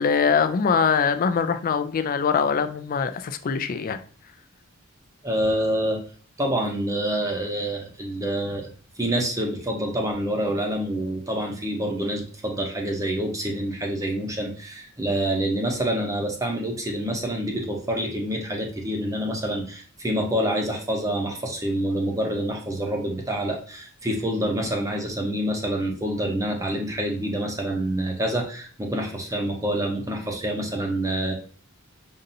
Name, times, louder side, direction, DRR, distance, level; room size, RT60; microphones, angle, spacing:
voice 1, 0.0-4.0, left 6 dB, 40° left, 0.4 m, -23 dB
voice 2, 5.2-6.0 6.4-8.7 9.0-31.3, right 1 dB, 15° right, 0.7 m, -27 dB
5.3 x 2.6 x 2.7 m
head